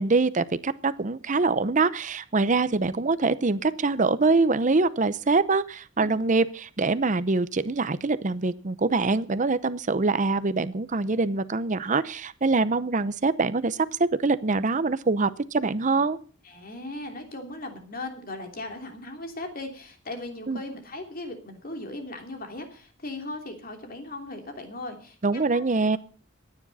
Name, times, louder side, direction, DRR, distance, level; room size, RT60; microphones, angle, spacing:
voice 1, 0.0-16.2 20.5-20.6 25.2-26.0, right 3 dB, 40° right, 14 dB, 0.7 m, -24 dB
voice 2, 16.4-25.7, left 2 dB, 45° left, 4 dB, 3.0 m, -38 dB
24.5 x 9.9 x 4.1 m, 0.38 s
head